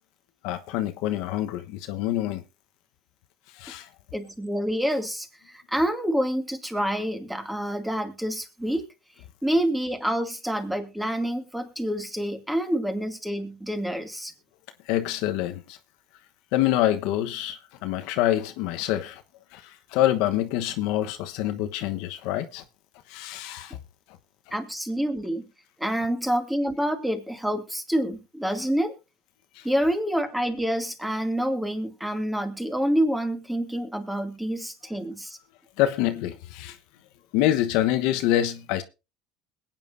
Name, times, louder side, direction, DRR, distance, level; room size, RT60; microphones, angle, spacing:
voice 1, 0.4-2.4 3.6-3.9 14.9-15.8 16.5-19.2 19.5-22.6 23.1-23.8 35.8-36.8 37.3-38.8, left 13 dB, 70° left, 1.1 m, -26 dB
voice 2, 4.1-8.9 9.4-14.3 24.5-25.5 25.8-28.9 29.6-35.4, equal, 5° right, 2.3 m, -27 dB
21.5 x 9.0 x 2.6 m
supercardioid pair, 100°, 0 cm